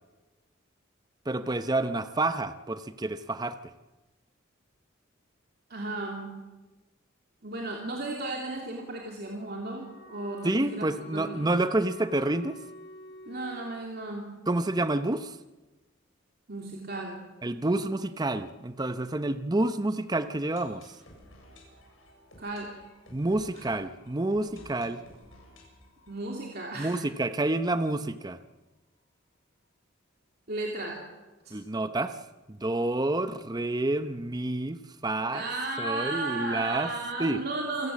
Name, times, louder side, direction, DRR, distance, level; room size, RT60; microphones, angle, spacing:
voice 1, 1.3-3.6 10.4-12.6 14.5-15.4 17.4-21.0 23.1-25.0 26.8-28.4 31.5-32.2 32.5-35.4 35.8-36.9 37.2-37.4, right 2 dB, 20° right, 11 dB, 0.7 m, -29 dB
voice 2, 5.7-6.3 7.4-10.9 11.1-11.5 13.3-14.3 16.5-17.2 22.4-22.7 23.5-23.6 26.1-27.0 30.5-31.0 31.4-31.5 35.3-37.9, right 2 dB, 50° right, -1 dB, 3.0 m, -34 dB
Wind instrument woodwind instrument, 9.4-13.7, left 1 dB, 60° left, 4.0 m, -47 dB
sound 1, 20.1-27.8 28.1-28.2 28.4-28.5 29.0-29.1, left 1 dB, 85° left, 7.9 m, -55 dB
27.5 x 17.0 x 7.5 m, 1.2 s
head